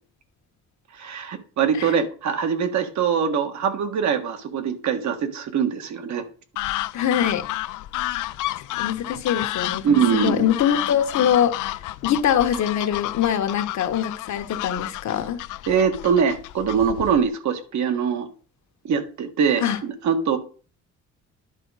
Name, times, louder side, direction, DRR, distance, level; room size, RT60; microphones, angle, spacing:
voice 1, 1.0-6.2 9.8-10.5 15.7-18.3 18.8-20.4, right 7 dB, 65° right, 1.5 m, -23 dB
sound 1, 6.6-17.3, left 16 dB, 80° left, 0.5 m, -31 dB
voice 2, 6.9-7.4 8.8-11.7 12.0-15.4 19.6-19.8, left 9 dB, 65° left, 1.3 m, -23 dB
11.0 x 5.1 x 4.8 m
cardioid pair, 100°, 30 cm